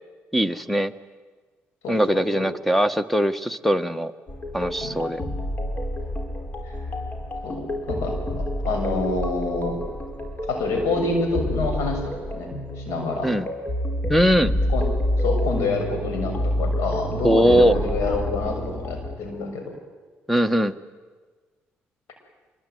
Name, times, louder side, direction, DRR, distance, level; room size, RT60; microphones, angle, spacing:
voice 1, 0.3-0.9 1.9-4.1 4.5-5.2 13.2-13.5 14.1-14.5 17.2-17.7 20.3-20.7, equal, 5° left, 13 dB, 1.3 m, -20 dB
voice 2, 1.8-2.5 4.8-5.0 7.4-9.8 10.5-13.3 14.5-14.9 15.2-19.7, left 3 dB, 85° left, 4 dB, 6.4 m, -27 dB
sound 1, 4.3-19.2, equal, 35° left, 5.0 m, -28 dB
25.5 x 22.5 x 9.3 m, 1.4 s
cardioid pair, 75°, 5 cm